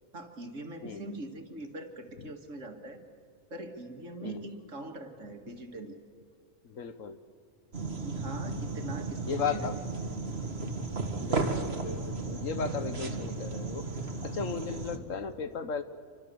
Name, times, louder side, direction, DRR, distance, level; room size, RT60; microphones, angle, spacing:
voice 1, 0.1-3.0 3.5-6.0 8.0-9.7, right 2 dB, 65° right, 4 dB, 2.5 m, -42 dB
voice 2, 6.6-7.2 9.3-9.8 11.2-13.9 14.2-15.8, left 6 dB, 70° left, 11 dB, 1.5 m, -36 dB
sound 1, 7.7-15.0, right 3 dB, 45° right, 2.2 m, -34 dB
28.0 x 24.5 x 7.0 m, 2.4 s
omnidirectional pair, 1.4 m